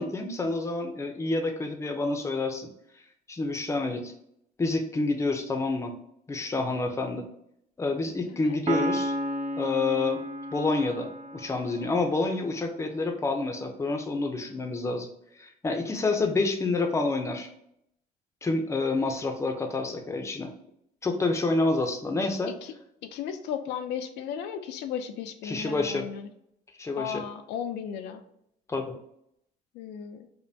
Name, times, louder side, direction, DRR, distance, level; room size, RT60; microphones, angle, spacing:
voice 1, 0.0-2.7 3.3-4.1 4.6-5.9 6.3-7.3 7.8-9.2 9.6-10.2 10.5-15.1 15.4-17.5 18.4-20.5 21.0-22.5 25.4-26.1 26.8-27.2 28.7-29.0, left 3 dB, 15° left, 5 dB, 0.6 m, -28 dB
voice 2, 8.2-8.6 22.5-22.7 23.0-26.3 27.0-28.2 29.7-30.3, left 8 dB, 85° left, 7 dB, 0.5 m, -35 dB
Piano, 8.7-12.3, right 1 dB, 40° right, 0.5 m, -33 dB
5.3 x 2.2 x 2.7 m, 0.74 s
cardioid pair, 110°, 17 cm